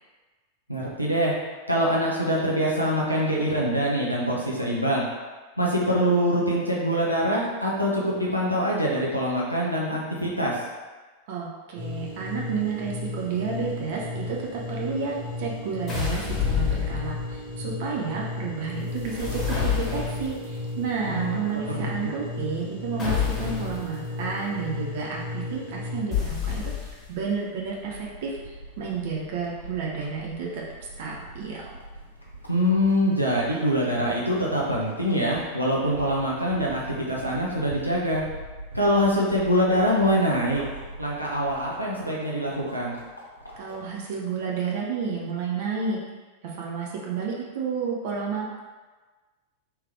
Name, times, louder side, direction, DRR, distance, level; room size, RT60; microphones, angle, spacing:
voice 1, 0.7-1.4 1.7-5.0 5.6-10.5 21.1-21.4 21.7-21.9 32.5-38.2 38.7-40.6 41.0-43.0, equal, 90° right, -5 dB, 0.7 m, -24 dB
voice 2, 11.3-30.6 31.0-31.6 43.6-46.0 46.4-48.6, right 5 dB, 50° right, -3 dB, 0.6 m, -31 dB
sound 1, 11.8-26.0, left 2 dB, 70° right, 1.5 m, -35 dB
sound 2, 15.9-17.5 18.9-20.4 23.0-23.8 26.1-27.2, left 7 dB, 20° left, 1.4 m, -28 dB
sound 3, 27.6-44.0, right 1 dB, 80° left, 0.7 m, -43 dB
3.2 x 3.0 x 3.6 m, 1.3 s
figure-of-eight pair, 90°, 0 cm